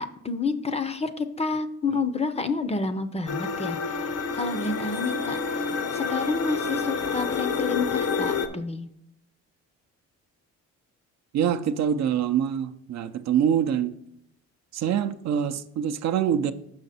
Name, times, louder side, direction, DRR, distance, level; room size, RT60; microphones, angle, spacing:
voice 1, 0.0-8.9, left 4 dB, 20° left, 0.5 m, -29 dB
sound 1, 3.3-8.5, left 5 dB, 55° left, 0.7 m, -28 dB
voice 2, 11.3-14.0 14.7-16.5, right 9 dB, 65° right, 0.5 m, -25 dB
6.4 x 5.7 x 4.1 m
cardioid pair, 90°, 30 cm